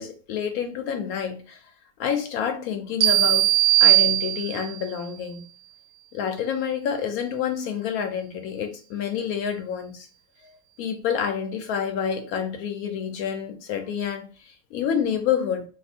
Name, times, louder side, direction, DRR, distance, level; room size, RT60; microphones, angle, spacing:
voice 1, 0.0-1.6 2.0-3.5 3.8-5.4 6.1-10.1 10.4-10.5 10.8-15.7, left 7 dB, 70° left, 6 dB, 0.9 m, -28 dB
sound 1, 3.0-4.8, right 16 dB, 70° right, 0.9 m, -19 dB
2.7 x 2.3 x 4.1 m, 0.37 s
omnidirectional pair, 1.9 m